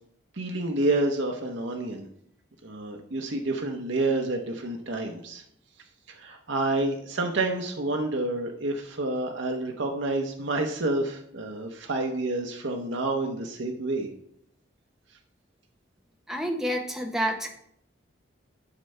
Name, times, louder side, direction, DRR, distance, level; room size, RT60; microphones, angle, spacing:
voice 1, 0.4-2.1 2.6-5.4 6.1-14.1, right 2 dB, 70° right, 3 dB, 0.8 m, -29 dB
voice 2, 16.3-17.5, equal, 5° right, 2 dB, 0.9 m, -28 dB
11.0 x 5.3 x 3.3 m, 0.71 s
head